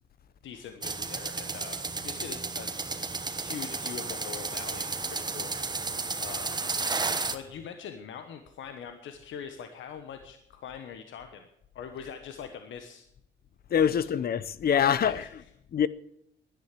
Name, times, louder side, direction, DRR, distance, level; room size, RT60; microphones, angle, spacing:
voice 1, 0.4-2.7 3.3-5.5 6.2-6.6 7.3-11.5 11.7-13.1 13.7-14.1 14.7-15.3, left 7 dB, 75° left, 1.3 m, -42 dB
sound 1, 0.8-7.3, right 3 dB, 20° right, 1.2 m, -33 dB
voice 2, 13.7-15.2 15.7-15.9, left 8 dB, 50° left, 0.8 m, -24 dB
12.0 x 9.8 x 8.4 m
cardioid pair, 90°, 20 cm